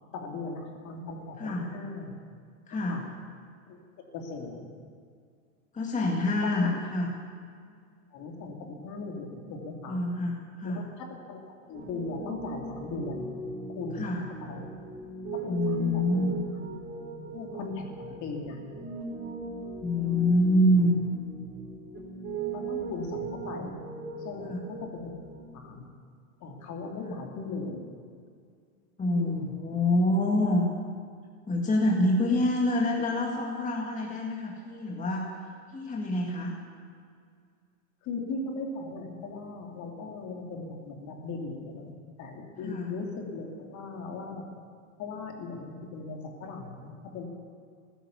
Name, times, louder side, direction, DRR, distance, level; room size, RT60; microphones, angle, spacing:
voice 1, 0.1-2.1 2.7-3.0 3.7-3.8 4.1-4.6 6.4-6.7 8.1-10.0 10.6-10.8 11.3-11.4 11.7-13.3 13.8-13.9 14.4-14.7 15.4-16.3 17.3-18.6 22.5-23.7 24.2-24.5 25.0-25.1 25.5-25.8 26.4-27.8 29.2-29.4 38.1-41.9 42.2-43.1 43.3-44.4 45.0-47.2, left 3 dB, 40° left, 1 dB, 2.8 m, -38 dB
voice 2, 1.4-1.7 2.7-3.0 5.7-7.1 9.9-10.9 13.9-14.3 15.5-16.4 19.8-21.0 24.4-24.6 27.0-27.2 29.0-30.6 31.5-35.3 35.7-36.6 42.6-42.9, left 1 dB, 15° left, -2 dB, 2.0 m, -26 dB
Piano, 11.7-25.4, right 4 dB, 25° right, 4.1 m, -38 dB
15.5 x 12.0 x 7.0 m, 2.2 s
hypercardioid pair, 115°, 44 cm